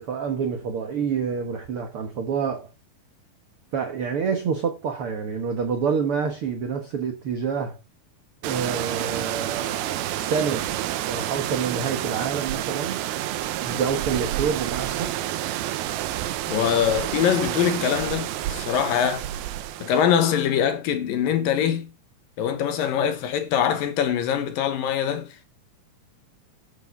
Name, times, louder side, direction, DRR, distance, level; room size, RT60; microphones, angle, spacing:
voice 1, 0.0-2.7 3.7-7.8 8.4-10.6 11.1-13.0 13.6-15.1, right 6 dB, 60° right, 1.5 m, -27 dB
sound 1, 8.4-20.1, right 13 dB, 80° right, 2.7 m, -29 dB
voice 2, 16.5-19.3 19.8-21.9 22.4-25.4, left 9 dB, 70° left, 2.7 m, -23 dB
8.5 x 7.3 x 5.4 m
omnidirectional pair, 4.4 m